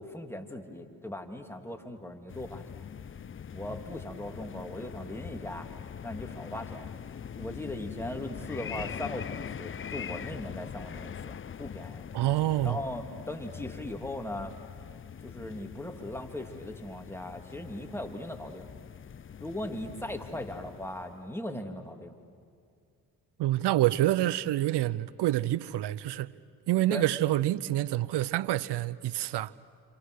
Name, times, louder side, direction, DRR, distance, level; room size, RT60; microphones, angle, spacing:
voice 1, 0.0-2.8 3.5-5.7 6.0-6.9 7.3-12.1 12.6-14.5 15.2-18.7 19.4-22.2 26.9-27.0, left 1 dB, 5° left, 2.9 m, -39 dB
sound 1, 2.3-21.4, left 7 dB, 30° left, 0.6 m, -42 dB
voice 2, 12.1-12.8 23.4-26.3 26.7-29.5, right 14 dB, 70° right, 0.8 m, -27 dB
29.0 x 27.0 x 6.5 m
supercardioid pair, 55°, 42 cm